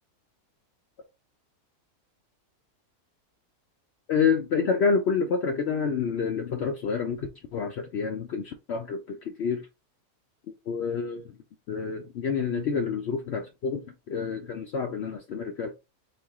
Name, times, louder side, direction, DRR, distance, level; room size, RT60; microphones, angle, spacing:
voice 1, 4.1-9.7 10.7-11.3 11.7-15.7, left 5 dB, 65° left, 0.6 m, -28 dB
4.1 x 2.5 x 3.5 m
omnidirectional pair, 1.6 m